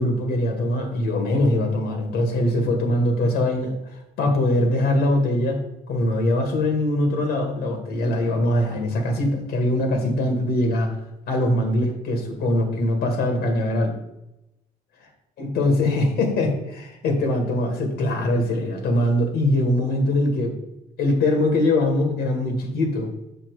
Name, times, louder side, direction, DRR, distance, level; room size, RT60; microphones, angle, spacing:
voice 1, 0.0-5.6 5.9-10.9 11.3-14.0 15.4-20.6 21.0-23.1, left 1 dB, 70° left, 4 dB, 1.8 m, -22 dB
7.1 x 6.1 x 4.7 m, 0.91 s
cardioid pair, 110°, 17 cm